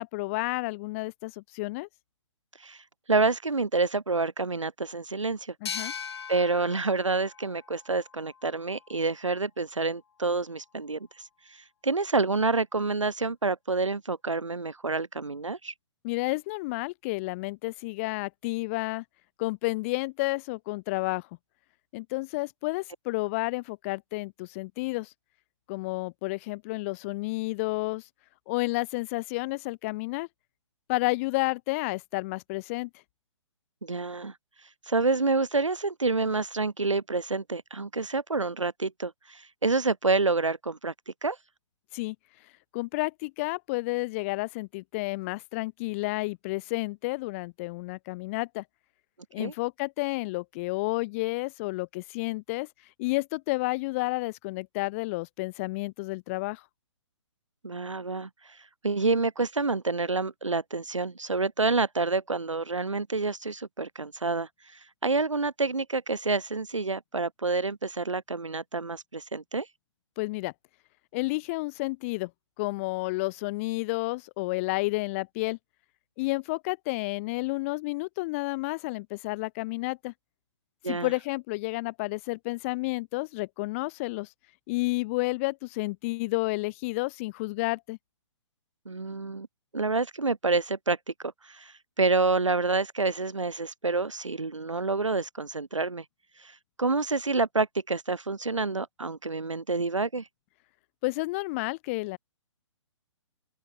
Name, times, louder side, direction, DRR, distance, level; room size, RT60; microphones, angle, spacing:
voice 1, 0.0-1.9 5.6-5.9 16.0-19.0 19.4-21.3 21.9-25.1 25.7-28.0 28.5-30.3 30.9-32.9 41.9-42.2 42.7-48.6 49.3-52.7 53.0-56.6 70.2-70.5 71.1-72.3 72.6-75.6 76.2-80.1 80.9-84.3 84.7-88.0 101.0-102.2, left 23 dB, 25° left, 0.9 m, -31 dB
voice 2, 3.1-5.5 6.3-11.1 11.8-15.7 33.8-34.3 34.9-41.4 49.4-49.5 57.6-58.3 58.8-64.5 65.0-69.7 80.8-81.1 88.8-89.5 89.7-91.0 91.2-96.0 96.4-96.5 96.8-100.3, right 3 dB, 80° right, 1.4 m, -28 dB
sound 1, 5.7-9.0, left 7 dB, 55° left, 1.8 m, -40 dB
open air
figure-of-eight pair, 130°, 16 cm